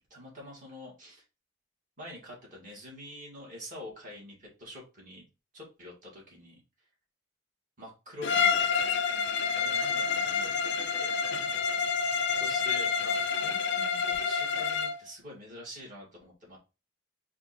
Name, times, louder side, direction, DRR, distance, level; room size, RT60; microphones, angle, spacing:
voice 1, 0.1-1.2 2.0-5.3 5.5-6.9 7.8-9.0 9.6-11.5 12.4-16.6, left 1 dB, 40° right, -3 dB, 2.0 m, -46 dB
Bowed string instrument, 8.2-15.0, left 6 dB, 60° left, 0.4 m, -28 dB
4.3 x 2.6 x 4.2 m, 0.30 s
head